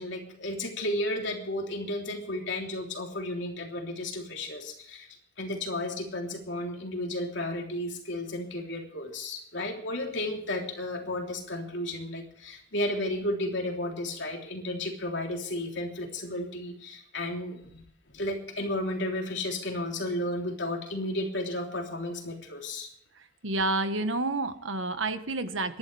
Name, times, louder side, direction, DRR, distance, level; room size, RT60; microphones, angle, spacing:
voice 1, 0.0-5.1 5.4-17.8 18.1-22.9, left 1 dB, 70° left, 1 dB, 3.4 m, -33 dB
voice 2, 23.4-25.8, right 2 dB, 85° right, 9 dB, 1.4 m, -29 dB
25.5 x 11.5 x 3.4 m, 0.66 s
head